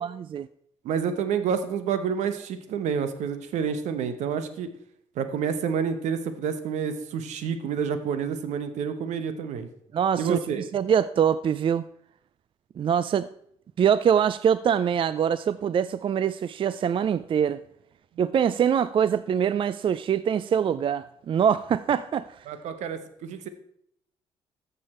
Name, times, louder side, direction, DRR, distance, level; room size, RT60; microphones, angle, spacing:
voice 1, 0.0-0.5 9.9-10.4 10.7-11.8 12.8-13.3 13.8-17.6 18.2-22.4, right 8 dB, 45° right, 0.4 m, -24 dB
voice 2, 0.8-4.7 5.2-9.7 10.2-10.6 22.5-23.5, right 7 dB, 80° right, 1.0 m, -29 dB
13.5 x 6.8 x 4.3 m
supercardioid pair, 60°, 12 cm